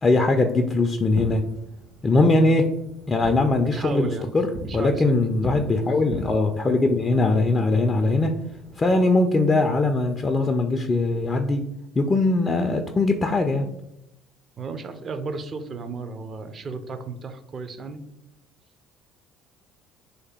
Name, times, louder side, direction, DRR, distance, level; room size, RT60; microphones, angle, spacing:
voice 1, 0.0-1.4 2.0-2.6 3.1-8.3 8.8-11.7 12.0-13.7, left 2 dB, 30° left, 4 dB, 0.3 m, -21 dB
Fireworks, 1.0-10.3, equal, 55° right, 0.9 m, -40 dB
voice 2, 3.6-4.3 4.6-5.1 14.6-18.0, right 4 dB, 40° right, 9 dB, 0.4 m, -34 dB
3.2 x 2.7 x 3.5 m, 0.85 s
figure-of-eight pair, 55°, 0 cm